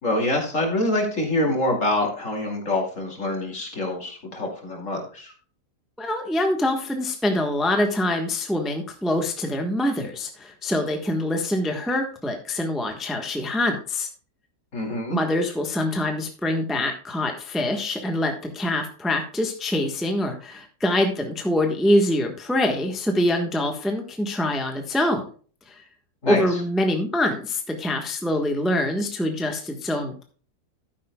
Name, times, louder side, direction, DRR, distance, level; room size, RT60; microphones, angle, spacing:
voice 1, 0.0-5.3 14.7-15.2 26.2-26.4, left 1 dB, 50° left, 1 dB, 2.8 m, -25 dB
voice 2, 6.0-14.1 15.1-25.3 25.7-25.8 26.2-30.2, left 1 dB, ahead, 3 dB, 1.1 m, -25 dB
12.5 x 9.7 x 2.3 m, 0.41 s
omnidirectional pair, 1.8 m